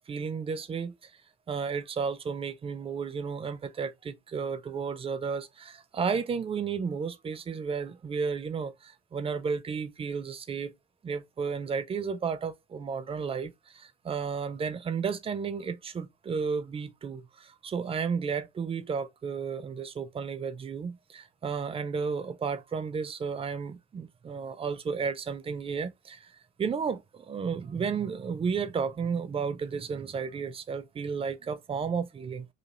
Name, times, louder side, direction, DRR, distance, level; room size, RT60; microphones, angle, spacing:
voice 1, 0.1-1.1 1.5-10.7 11.0-26.3 26.6-32.5, right 5 dB, 20° right, 0.4 m, -33 dB
2.5 x 2.5 x 2.8 m
figure-of-eight pair, 45°, 32 cm